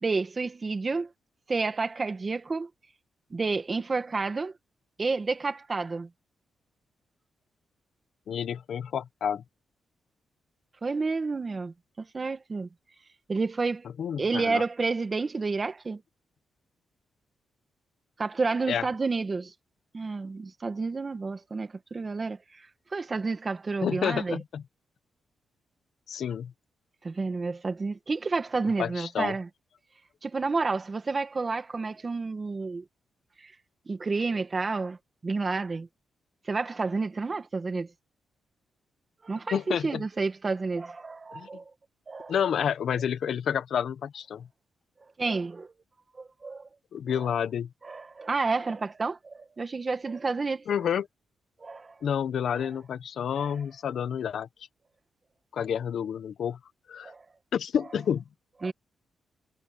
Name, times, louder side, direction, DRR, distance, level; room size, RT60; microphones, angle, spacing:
voice 1, 0.0-1.1 1.5-2.7 3.3-4.5 5.0-6.1 10.8-12.7 13.3-13.9 14.2-16.0 18.2-19.5 19.9-22.6 22.9-24.4 27.0-29.5 30.2-32.8 33.4-33.5 33.9-35.0 35.2-35.9 36.5-37.9 39.2-41.6 42.1-42.4 45.2-45.7 46.2-46.7 47.2-47.3 47.8-50.6 51.6-51.9 52.5-52.7 53.3-53.5 57.0-57.2 58.6-58.7, right 4 dB, 30° right, 2.0 m, -30 dB
voice 2, 8.3-9.4 14.0-14.6 18.7-18.8 23.8-24.6 26.1-26.5 28.8-29.3 39.5-40.0 41.3-41.5 42.3-44.5 46.9-47.7 50.7-51.1 52.0-54.5 55.5-56.6 56.9-57.1 57.5-58.2, left 8 dB, 70° left, 1.1 m, -29 dB
cardioid pair, 110°, 0 cm